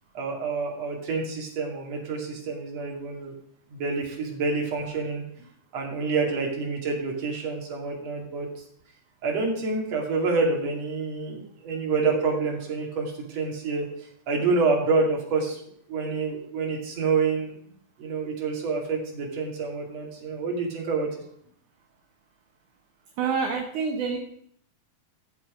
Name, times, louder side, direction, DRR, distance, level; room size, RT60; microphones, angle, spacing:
voice 1, 0.1-3.3 3.7-5.2 5.7-8.5 9.2-13.9 14.3-15.6 15.9-17.5 18.0-21.1, right 4 dB, 50° right, 0 dB, 3.4 m, -27 dB
voice 2, 23.2-24.2, right 5 dB, 65° right, 3 dB, 2.4 m, -27 dB
13.5 x 7.5 x 5.1 m, 0.66 s
omnidirectional pair, 4.1 m